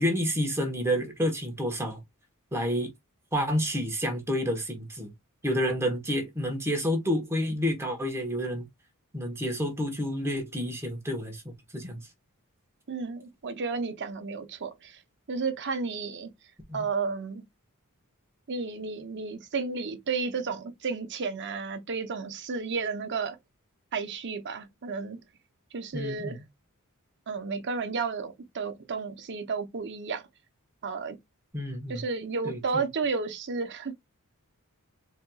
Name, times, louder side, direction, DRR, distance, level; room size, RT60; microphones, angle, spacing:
voice 1, 0.0-2.0 2.5-2.9 3.3-5.1 5.4-8.6 9.1-12.0 16.7-16.8 25.9-26.4 31.5-32.0 32.4-32.8, equal, 10° right, 1.1 m, -29 dB
voice 2, 12.9-15.0 15.3-16.3 16.7-17.4 18.5-23.4 23.9-25.2 25.7-26.4 27.3-30.2 30.8-31.2 31.9-33.9, right 4 dB, 55° right, 0.7 m, -32 dB
4.1 x 2.9 x 2.3 m
head